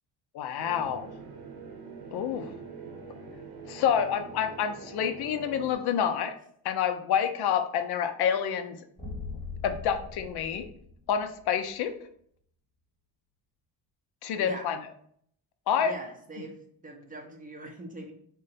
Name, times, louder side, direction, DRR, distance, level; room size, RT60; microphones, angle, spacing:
voice 1, 0.3-1.1 2.1-2.5 3.7-6.3 6.6-8.8 9.6-10.7 11.1-11.9 14.2-14.8 15.7-15.9, left 8 dB, 70° left, 8 dB, 0.5 m, -28 dB
sound 1, 0.6-5.7, right 4 dB, 65° right, 0.8 m, -44 dB
sound 2, 9.0-11.6, left 4 dB, 10° left, 0.8 m, -40 dB
voice 2, 14.4-14.7 15.8-16.6 16.8-18.1, right 2 dB, 20° right, 2 dB, 0.5 m, -42 dB
3.7 x 2.2 x 4.0 m, 0.64 s
cardioid pair, 140°, 41 cm